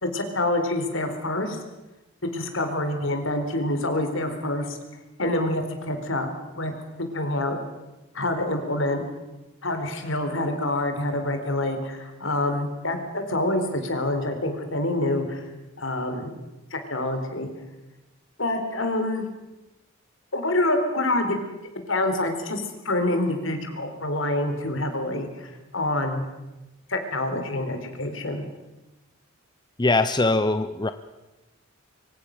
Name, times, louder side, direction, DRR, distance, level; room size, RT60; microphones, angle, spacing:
voice 1, 0.0-1.6 2.3-4.8 5.2-6.7 7.0-7.6 8.1-9.0 9.6-15.4 15.8-16.3 16.7-17.5 18.4-19.2 20.3-21.4 21.7-26.3 26.9-28.4, left 1 dB, 65° left, 7 dB, 4.2 m, -26 dB
voice 2, 29.8-30.9, left 2 dB, 20° left, 11 dB, 0.8 m, -21 dB
25.5 x 24.5 x 6.7 m, 1.0 s
head